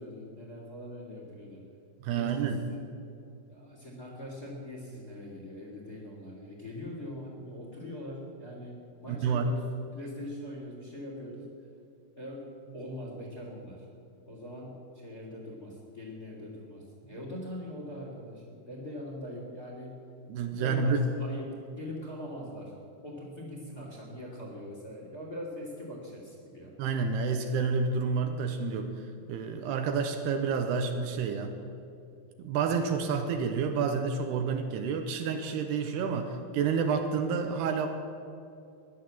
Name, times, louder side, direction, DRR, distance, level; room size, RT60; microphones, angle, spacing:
voice 1, 0.0-1.6 2.1-2.9 3.5-9.6 9.9-11.5 12.1-13.9 14.3-20.0 20.6-22.7 23.0-26.7, left 1 dB, 30° left, -1 dB, 2.3 m, -42 dB
voice 2, 2.0-2.6 9.1-9.5 20.3-21.0 26.8-28.9 29.3-31.5 32.4-37.9, right 5 dB, 80° right, 5 dB, 2.9 m, -29 dB
15.5 x 11.0 x 7.5 m, 2.5 s
omnidirectional pair, 4.8 m